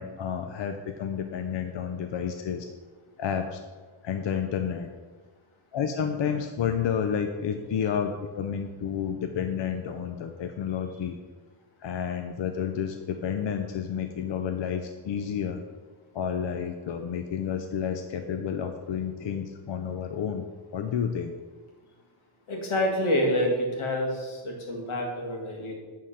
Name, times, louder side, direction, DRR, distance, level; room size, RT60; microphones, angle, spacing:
voice 1, 0.0-2.7 3.2-3.6 4.0-4.9 5.7-11.2 11.8-15.6 16.1-20.4 20.7-21.3, left 7 dB, 65° left, 6 dB, 0.6 m, -30 dB
voice 2, 22.5-25.7, left 1 dB, 90° left, 0 dB, 1.8 m, -27 dB
8.9 x 3.8 x 5.6 m, 1.4 s
cardioid pair, 85°, 48 cm